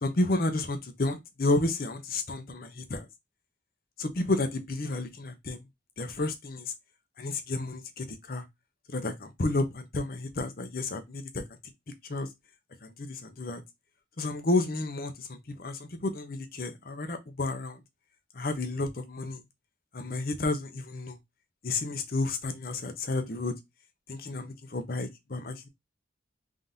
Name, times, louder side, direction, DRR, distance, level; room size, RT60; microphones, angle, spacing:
voice 1, 0.0-3.1 4.0-5.6 6.0-6.7 7.2-8.4 8.9-11.4 12.0-12.3 12.8-13.6 14.2-17.8 18.3-19.4 19.9-21.2 21.6-23.5 24.1-25.7, left 2 dB, 55° left, 0.7 m, -31 dB
3.7 x 2.7 x 3.6 m
head